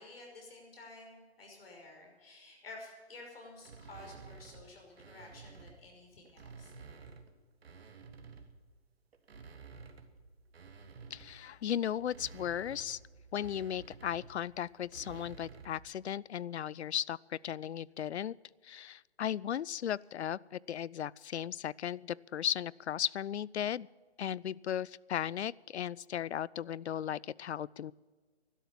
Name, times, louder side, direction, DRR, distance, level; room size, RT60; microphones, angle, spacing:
voice 1, 0.0-6.7, left 2 dB, 60° left, 0 dB, 5.9 m, -52 dB
sound 1, 3.6-5.8 6.3-8.7 9.1-15.9, right 4 dB, 65° right, 1.7 m, -52 dB
voice 2, 11.1-13.0 13.3-18.3 18.6-23.9 24.2-27.9, left 10 dB, 80° left, 24 dB, 0.5 m, -36 dB
13.0 x 11.5 x 7.3 m, 1.5 s
hypercardioid pair, 150°, 33 cm